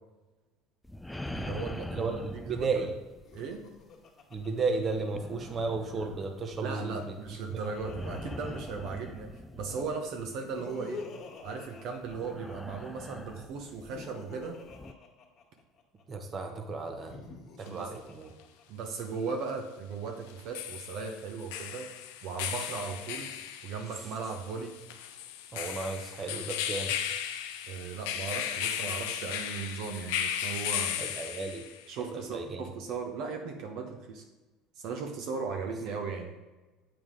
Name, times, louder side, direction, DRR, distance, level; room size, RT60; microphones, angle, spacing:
sound 1, 0.8-3.8 4.4-10.5 11.5-11.7 12.0-14.9, left 1 dB, 5° left, 0.3 m, -43 dB
voice 1, 1.3-2.7 3.3-3.7 6.6-11.0 11.4-14.6 17.6-17.9 18.7-21.9 22.2-23.3 23.6-24.8 27.7-31.0 31.9-34.2 34.8-36.3, right 5 dB, 65° right, 3 dB, 0.9 m, -37 dB
voice 2, 1.9-2.9 4.3-7.2 7.5-7.6 16.1-17.1 17.6-18.3 25.5-26.9 31.0-31.6 32.1-32.6, right 4 dB, 35° right, 4 dB, 1.1 m, -34 dB
Laughter, 3.1-5.7 7.0-9.4 10.2-12.8 13.6-16.0 16.9-18.8, left 4 dB, 45° left, 1.5 m, -48 dB
sound 2, 17.7-17.8 20.3-31.9, left 9 dB, 80° left, 0.6 m, -36 dB
7.4 x 4.9 x 3.7 m, 1.2 s
supercardioid pair, 90°, 0 cm